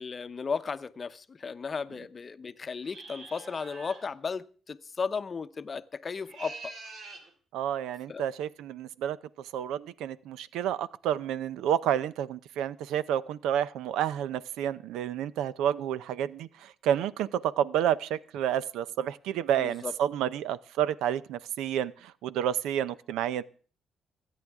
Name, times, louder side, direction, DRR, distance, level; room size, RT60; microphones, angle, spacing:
voice 1, 0.0-6.7 8.1-8.2 19.6-19.9, left 5 dB, 35° left, 0.7 m, -35 dB
sound 1, 2.8-4.1 6.1-7.3, right 3 dB, 65° right, 3.1 m, -45 dB
voice 2, 7.5-23.4, right 10 dB, 90° right, 0.5 m, -30 dB
26.5 x 9.2 x 3.6 m
cardioid pair, 90°, 0 cm